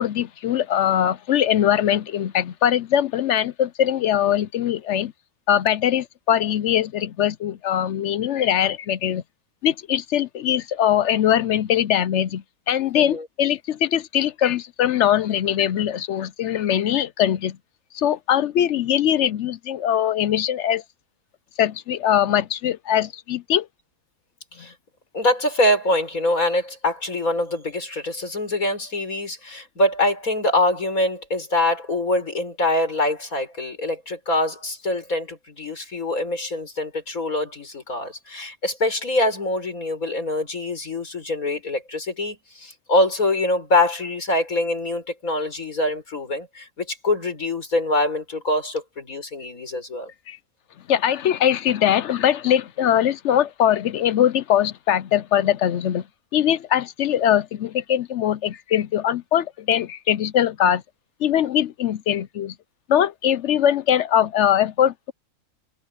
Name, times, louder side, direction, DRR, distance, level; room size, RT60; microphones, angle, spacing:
voice 1, 0.0-5.1 5.5-9.2 9.6-17.6 17.9-20.8 21.6-23.7 50.3-50.4 50.9-56.0 56.3-60.8 61.2-62.5 62.9-65.1, left 10 dB, 65° left, 0.8 m, -21 dB
voice 2, 12.9-13.3 24.6-24.7 25.1-50.1, left 1 dB, 85° left, 5.8 m, -24 dB
omnidirectional pair, 1.4 m